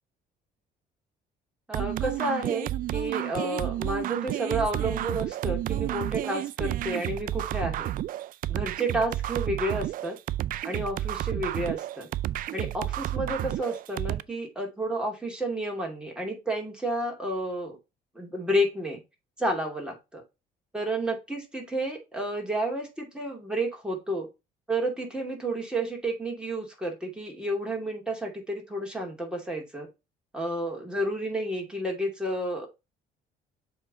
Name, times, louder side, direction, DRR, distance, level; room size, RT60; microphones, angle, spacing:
voice 1, 1.7-7.9 8.5-10.2 10.6-12.1 12.5-17.8 18.1-19.0 19.4-20.2 20.7-24.3 24.7-29.9 30.3-32.7, right 1 dB, 5° right, 0 dB, 2.6 m, -31 dB
sound 1, 1.7-14.2, right 13 dB, 55° right, 0.4 m, -31 dB
7.3 x 3.7 x 4.0 m, 0.25 s
cardioid pair, 110°, 17 cm